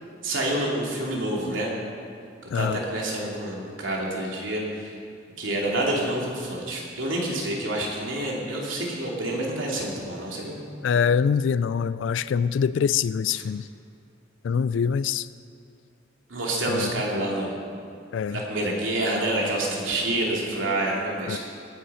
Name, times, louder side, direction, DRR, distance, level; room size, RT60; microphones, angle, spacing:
voice 1, 0.2-1.7 2.5-4.9 5.4-10.6 13.4-13.5 16.3-17.6 18.3-21.4, right 1 dB, 80° right, -3 dB, 2.9 m, -28 dB
voice 2, 10.8-13.7 14.4-15.3 16.7-16.9 18.1-18.4 21.3-21.4, left 6 dB, 70° left, 16 dB, 0.3 m, -24 dB
19.0 x 8.5 x 5.6 m, 2.3 s
head